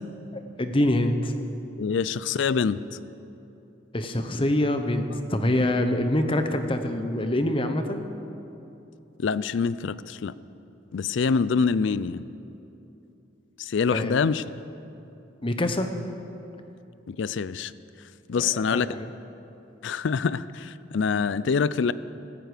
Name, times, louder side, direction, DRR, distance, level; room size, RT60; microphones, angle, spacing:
voice 1, 0.3-1.3 3.9-5.0 5.3-8.1 13.9-14.2 15.4-15.9 18.3-19.1, left 1 dB, 25° left, 7 dB, 0.9 m, -25 dB
voice 2, 1.8-2.8 9.2-10.3 10.9-12.2 13.6-14.4 17.1-17.7 18.3-18.9 19.8-21.9, left 5 dB, 65° left, 17 dB, 0.4 m, -25 dB
16.0 x 14.0 x 5.1 m, 2.8 s
head